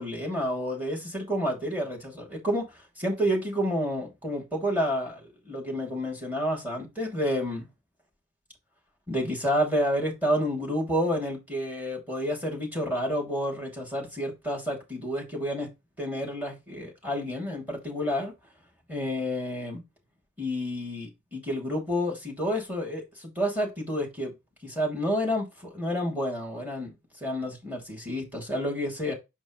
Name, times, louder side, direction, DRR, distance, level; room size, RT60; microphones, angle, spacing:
voice 1, 0.0-7.7 9.1-15.7 16.0-18.3 18.9-19.8 20.4-24.3 24.6-27.0 27.2-29.1, equal, 10° right, 2.8 m, -29 dB
6.2 x 5.3 x 3.1 m
head